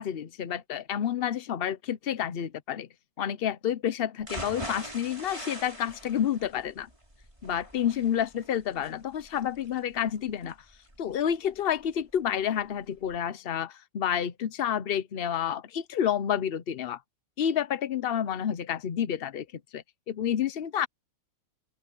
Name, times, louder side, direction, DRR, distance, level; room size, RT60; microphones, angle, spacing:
voice 1, 0.0-2.9 3.2-6.9 7.4-10.6 11.0-17.0 17.4-19.5 19.7-20.9, left 9 dB, 70° left, 0.5 m, -29 dB
sound 1, 4.2-12.2 12.6-12.7 13.1-13.2, right 1 dB, 15° right, 6.1 m, -43 dB
open air
omnidirectional pair, 1.9 m